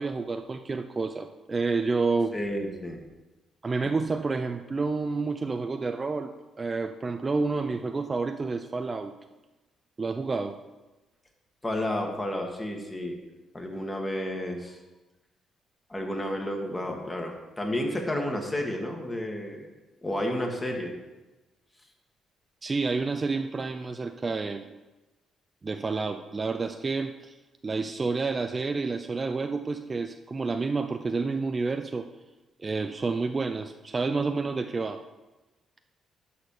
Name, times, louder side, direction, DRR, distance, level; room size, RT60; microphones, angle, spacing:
voice 1, 0.0-2.4 3.6-6.3 6.6-9.1 10.0-10.6 22.6-24.7 25.6-27.4 27.6-32.1 32.6-35.0, right 4 dB, 30° right, 7 dB, 0.5 m, -29 dB
voice 2, 2.3-3.0 3.8-4.0 11.6-13.2 13.5-14.8 15.9-19.7 20.0-20.9, left 1 dB, 20° left, 1 dB, 1.9 m, -31 dB
11.5 x 4.3 x 6.7 m, 1.1 s
cardioid pair, 90°, 0 cm